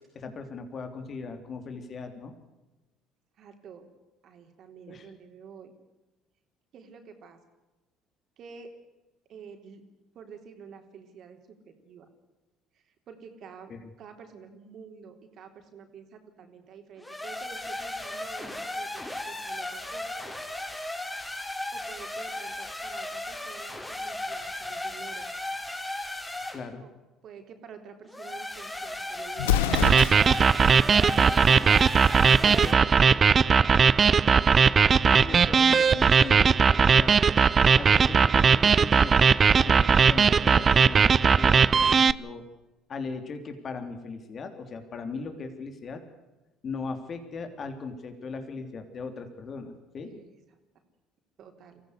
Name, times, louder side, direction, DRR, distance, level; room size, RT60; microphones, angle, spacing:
voice 1, 0.1-2.3 4.9-5.1 13.7-13.9 26.5-26.8 31.2-31.7 32.4-32.7 35.2-37.2 37.8-39.3 39.5-42.4 42.9-46.0 46.6-50.1, left 4 dB, 45° left, 7 dB, 3.4 m, -39 dB
voice 2, 3.4-3.9 4.2-5.7 6.7-7.4 8.4-8.7 9.3-9.8 10.1-12.1 12.7-13.7 14.0-20.1 21.7-25.3 26.7-26.9 27.2-29.8 50.0-50.4 50.7-50.8 51.4-51.8, right 6 dB, 60° right, 5 dB, 3.8 m, -49 dB
sound 1, 17.0-26.6 28.1-32.7, left 1 dB, 10° left, 4.6 m, -36 dB
Explosion, 29.4-30.5, left 11 dB, 90° left, 0.8 m, -26 dB
sound 2, 29.7-42.1, right 6 dB, 40° right, 0.6 m, -19 dB
23.5 x 15.5 x 8.2 m, 1.1 s
hypercardioid pair, 65°, 0 cm